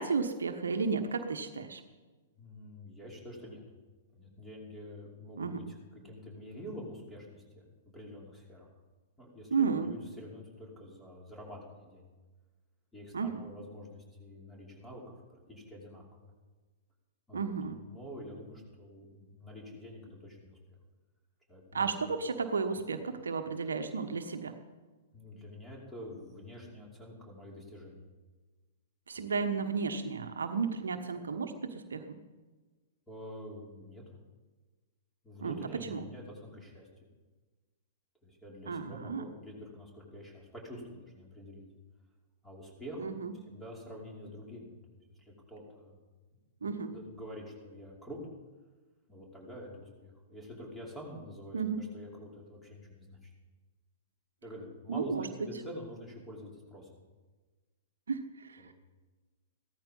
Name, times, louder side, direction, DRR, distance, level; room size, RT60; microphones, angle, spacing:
voice 1, 0.0-1.8 5.4-5.6 9.5-9.9 13.1-13.4 17.3-17.8 21.7-24.5 29.1-32.2 35.4-36.0 38.7-39.2 43.0-43.3 46.6-46.9 51.5-51.8 54.9-55.5 58.1-58.6, right 5 dB, 75° right, 7 dB, 1.2 m, -33 dB
voice 2, 2.4-3.6 4.1-7.6 7.9-8.7 9.2-12.1 12.9-16.3 17.3-20.6 21.5-21.9 25.1-28.0 29.2-29.3 33.1-34.0 35.2-36.9 38.2-41.6 42.4-43.2 43.5-46.0 46.9-48.2 49.1-53.3 54.4-56.9 58.6-58.7, equal, 5° left, -2 dB, 5.3 m, -47 dB
16.0 x 13.5 x 5.5 m, 1.3 s
figure-of-eight pair, 110°, 0 cm